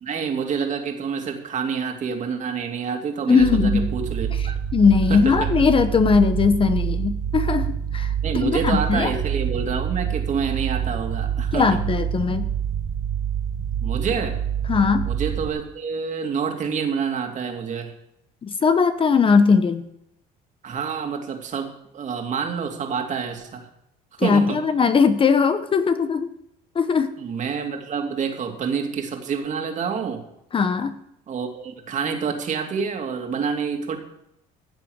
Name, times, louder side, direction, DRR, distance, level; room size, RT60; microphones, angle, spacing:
voice 1, 0.0-4.5 5.1-5.5 8.2-11.8 13.8-14.4 15.1-17.9 20.6-23.7 24.2-24.6 27.2-30.2 31.3-34.0, right 6 dB, 45° right, 4 dB, 2.6 m, -27 dB
voice 2, 3.3-3.9 4.7-9.1 11.5-12.5 14.7-15.1 18.4-19.9 24.2-26.3 26.7-27.1 30.5-30.9, left 5 dB, 30° left, 11 dB, 0.9 m, -19 dB
sound 1, 3.4-15.5, right 8 dB, 70° right, 2.2 m, -26 dB
15.0 x 7.7 x 6.5 m, 0.79 s
cardioid pair, 115°, 18 cm